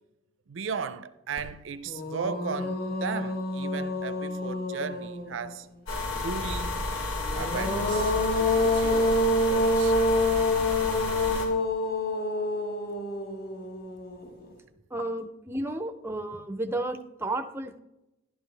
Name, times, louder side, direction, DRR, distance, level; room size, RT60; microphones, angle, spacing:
voice 1, 0.5-5.7 6.2-6.9 7.4-9.2 9.5-10.0, right 5 dB, 70° right, 0.5 m, -36 dB
sound 1, 1.4-1.5 1.9-5.5 7.2-14.4, left 1 dB, 45° left, 1.4 m, -27 dB
sound 2, 5.9-11.5, left 2 dB, 80° left, 2.6 m, -31 dB
voice 2, 14.9-17.8, right 1 dB, 10° right, 0.6 m, -32 dB
12.5 x 11.5 x 3.3 m
head